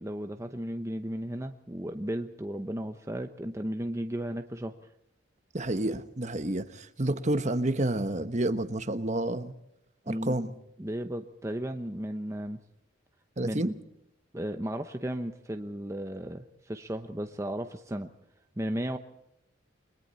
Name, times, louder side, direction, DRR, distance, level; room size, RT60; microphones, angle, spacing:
voice 1, 0.0-4.8 10.1-10.4 10.8-12.6 13.4-13.7 14.3-18.1 18.6-19.0, right 1 dB, 15° right, 6 dB, 0.9 m, -35 dB
voice 2, 5.5-9.5 10.1-10.5 13.4-13.7, right 1 dB, 35° right, 10 dB, 1.3 m, -29 dB
29.5 x 22.0 x 4.2 m, 0.81 s
head